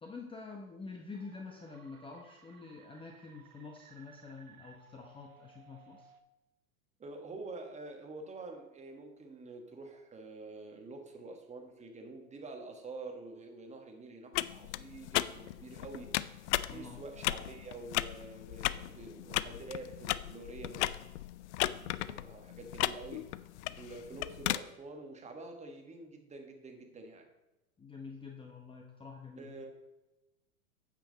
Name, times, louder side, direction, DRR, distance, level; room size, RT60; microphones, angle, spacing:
voice 1, 0.0-6.1 16.7-17.0 27.8-29.5, left 4 dB, 10° left, 1 dB, 0.9 m, -47 dB
sound 1, 1.1-6.2, right 8 dB, 85° right, 1.1 m, -60 dB
voice 2, 7.0-16.1 16.6-20.9 21.8-23.2 23.8-27.3 29.4-29.8, right 3 dB, 15° right, 3 dB, 1.5 m, -47 dB
sound 2, 14.3-24.6, left 15 dB, 55° left, 0.5 m, -36 dB
8.9 x 7.7 x 4.0 m, 0.99 s
hypercardioid pair, 105°, 42 cm